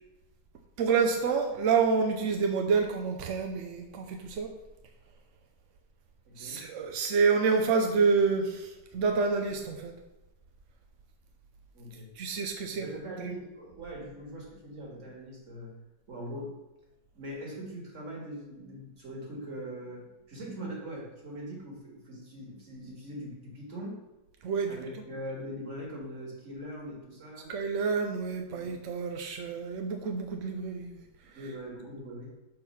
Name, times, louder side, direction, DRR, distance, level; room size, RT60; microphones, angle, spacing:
voice 1, 0.8-4.5 6.4-9.9 12.2-12.9 13.2-13.3 24.4-24.8 27.5-31.0, right 5 dB, 65° right, 4 dB, 0.7 m, -28 dB
voice 2, 6.3-6.6 11.7-12.1 12.7-15.7 16.1-16.5 17.1-24.0 24.7-27.5 28.5-28.8 31.3-32.3, equal, 45° right, -2 dB, 2.1 m, -41 dB
6.2 x 4.6 x 5.6 m, 1.0 s
omnidirectional pair, 1.9 m